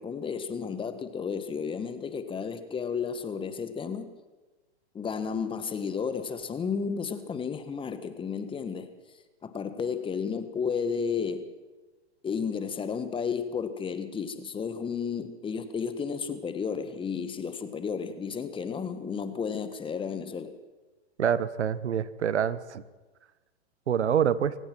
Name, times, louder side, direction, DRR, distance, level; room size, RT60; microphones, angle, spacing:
voice 1, 0.0-4.1 4.9-8.9 9.4-11.5 12.2-20.5, left 6 dB, 15° left, 10 dB, 1.4 m, -32 dB
voice 2, 21.2-22.8 23.9-24.6, right 8 dB, 85° right, 17 dB, 1.2 m, -26 dB
25.5 x 16.5 x 6.1 m, 1.2 s
hypercardioid pair, 120°, 33 cm